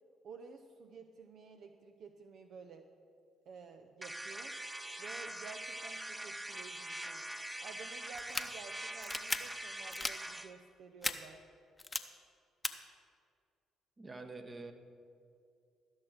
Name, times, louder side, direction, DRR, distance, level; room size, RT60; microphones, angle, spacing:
voice 1, 0.2-2.9 3.5-4.6 5.0-7.2 7.6-11.4, right 5 dB, 65° right, 6 dB, 0.6 m, -52 dB
sound 1, 4.0-10.5, right 1 dB, 15° right, 0.9 m, -43 dB
sound 2, 8.1-8.4 9.0-9.4 9.9-10.1 11.0-11.1 11.8-12.0 12.6-12.7, left 3 dB, 20° left, 0.8 m, -35 dB
voice 2, 14.0-14.7, right 3 dB, 30° right, 7 dB, 1.2 m, -46 dB
14.5 x 6.3 x 6.5 m, 2.3 s
hypercardioid pair, 50°, 0 cm